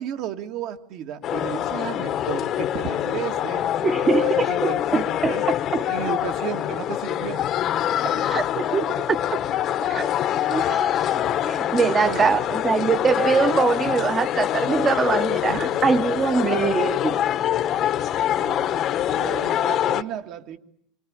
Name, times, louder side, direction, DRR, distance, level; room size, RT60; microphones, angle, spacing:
voice 1, 0.0-3.7 3.9-5.4 5.9-7.4 8.1-8.3 11.5-12.4 15.5-15.9 17.1-17.3 18.4-20.6, right 10 dB, 50° right, 6 dB, 2.0 m, -34 dB
sound 1, 1.2-20.0, left 11 dB, 35° left, 1.1 m, -25 dB
voice 2, 3.8-4.5 4.9-5.8 8.2-9.2 9.8-10.1 10.5-17.2 18.6-18.7, right 5 dB, 20° right, 13 dB, 1.1 m, -23 dB
26.5 x 24.0 x 8.8 m, 0.71 s
supercardioid pair, 150°, 0 cm